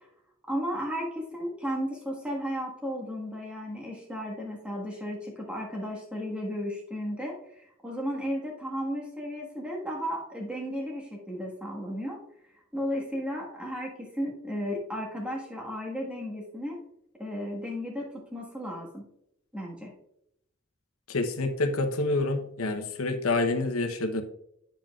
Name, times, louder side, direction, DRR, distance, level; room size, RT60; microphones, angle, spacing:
voice 1, 0.5-12.2 12.7-16.8 17.2-19.0 19.5-19.9, equal, 5° right, -2 dB, 1.5 m, -34 dB
voice 2, 21.1-24.2, left 2 dB, 85° left, 6 dB, 0.9 m, -27 dB
8.9 x 7.2 x 2.4 m, 0.76 s
head